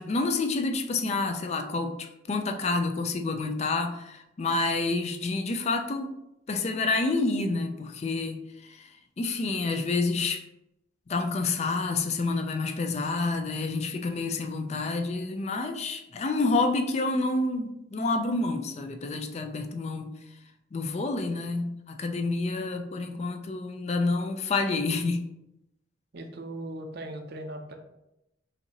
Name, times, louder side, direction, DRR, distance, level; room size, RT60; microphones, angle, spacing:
voice 1, 0.0-6.1 6.5-10.4 11.1-20.1 20.7-25.2, left 3 dB, 35° left, 6 dB, 0.4 m, -28 dB
voice 2, 26.1-27.7, right 1 dB, 60° right, 5 dB, 0.6 m, -38 dB
5.8 x 2.7 x 2.8 m, 0.88 s
head